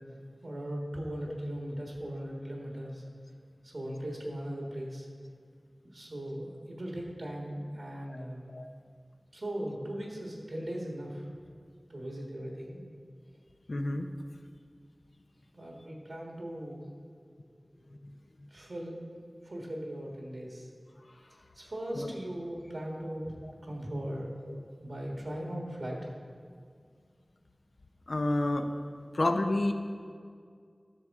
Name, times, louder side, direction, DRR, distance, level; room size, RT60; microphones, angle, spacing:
voice 1, 0.0-3.0 3.6-5.1 5.9-8.4 9.3-11.3 11.9-12.8 15.5-16.8 18.5-19.1 19.4-20.7 21.5-23.3 23.6-24.4 24.8-26.1, right 1 dB, 70° right, -1 dB, 1.5 m, -38 dB
voice 2, 13.7-14.1 18.0-18.1 22.0-22.1 24.5-24.6 28.1-28.7 29.1-29.7, left 2 dB, 70° left, 5 dB, 0.6 m, -29 dB
12.0 x 6.3 x 3.6 m, 2.2 s
wide cardioid pair, 45°, 0 cm